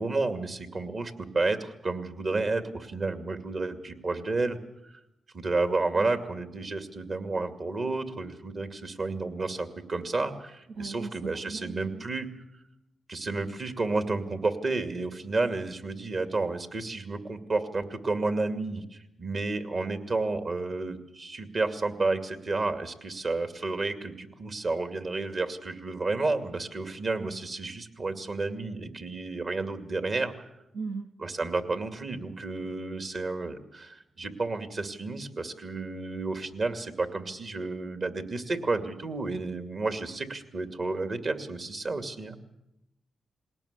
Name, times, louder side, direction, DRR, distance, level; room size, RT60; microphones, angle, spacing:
voice 1, 0.0-4.6 5.3-12.3 13.1-30.5 31.2-42.4, right 3 dB, 55° right, 8 dB, 2.4 m, -31 dB
voice 2, 10.8-12.0 30.7-31.1, right 4 dB, 80° right, 7 dB, 0.7 m, -38 dB
21.0 x 18.0 x 8.4 m, 0.85 s
cardioid pair, 60°, 0 cm